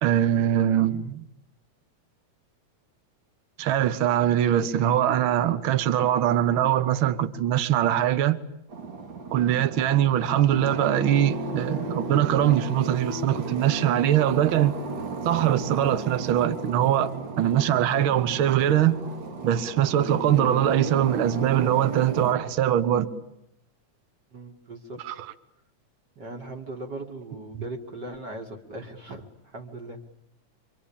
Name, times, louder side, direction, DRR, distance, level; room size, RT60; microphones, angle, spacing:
voice 1, 0.0-1.3 3.6-8.4 9.3-14.8 15.2-19.0 19.4-23.1 25.0-25.3, right 11 dB, 55° right, 1.7 m, -22 dB
sound 1, 8.7-22.3, right 3 dB, 85° right, 4.4 m, -34 dB
voice 2, 24.3-25.0 26.2-30.0, right 2 dB, 35° right, 2.6 m, -39 dB
26.5 x 25.5 x 8.7 m
omnidirectional pair, 3.4 m